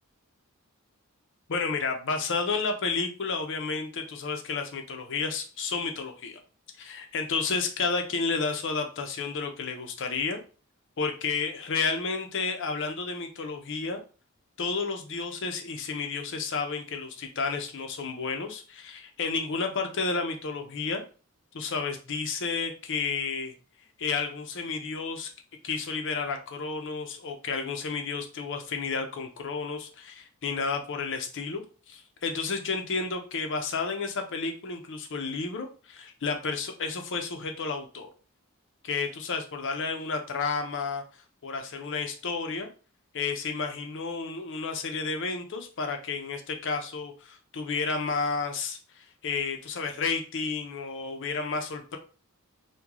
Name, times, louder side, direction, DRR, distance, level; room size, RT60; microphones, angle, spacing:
voice 1, 1.5-6.4 6.8-10.4 11.0-14.0 14.6-21.0 21.5-23.5 24.0-25.3 25.6-31.6 31.9-38.1 38.8-41.0 41.4-42.7 43.1-52.0, left 4 dB, 60° left, 5 dB, 0.6 m, -31 dB
3.0 x 2.2 x 3.7 m, 0.36 s
head